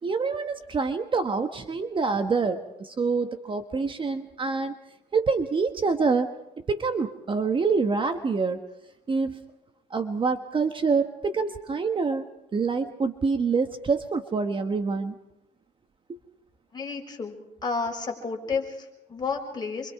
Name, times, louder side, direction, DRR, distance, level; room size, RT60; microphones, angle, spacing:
voice 1, 0.0-4.8 5.1-6.3 6.7-8.6 9.1-9.4 9.9-12.2 12.5-15.1 16.1-16.2, right 4 dB, 30° right, 7 dB, 1.3 m, -26 dB
voice 2, 16.7-17.3 17.6-19.9, left 4 dB, 25° left, 0 dB, 6.2 m, -31 dB
28.5 x 24.5 x 4.8 m, 0.89 s
cardioid pair, 110°, 17 cm